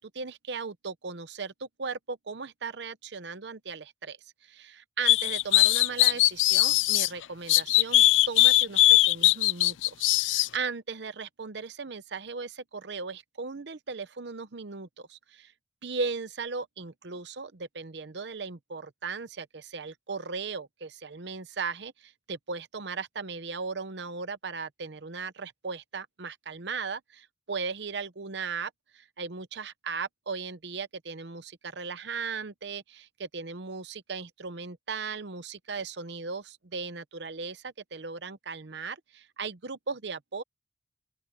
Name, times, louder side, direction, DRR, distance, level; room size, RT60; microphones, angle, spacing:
voice 1, 0.0-4.2 4.4-15.5 15.8-40.4, right 4 dB, 65° right, 0.8 m, -37 dB
sound 1, 5.0-7.1 7.5-10.5, left 16 dB, 85° left, 0.4 m, -20 dB
open air
head